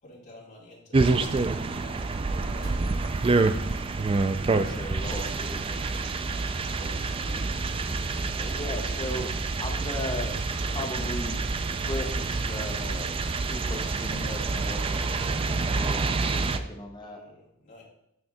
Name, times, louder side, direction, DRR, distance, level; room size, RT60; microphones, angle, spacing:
voice 1, 0.0-3.0 17.0-17.8, left 1 dB, 35° left, -5 dB, 2.2 m, -52 dB
sound 1, 0.9-16.6, right 3 dB, 25° right, 0.3 m, -27 dB
sound 2, 2.3-12.9, right 1 dB, 45° right, 2.3 m, -46 dB
voice 2, 4.6-5.9 8.4-9.3 9.6-10.4 10.7-11.4 11.8-13.2 13.5-17.2, left 1 dB, 20° left, 3 dB, 0.7 m, -37 dB
6.6 x 6.3 x 3.5 m, 0.79 s
head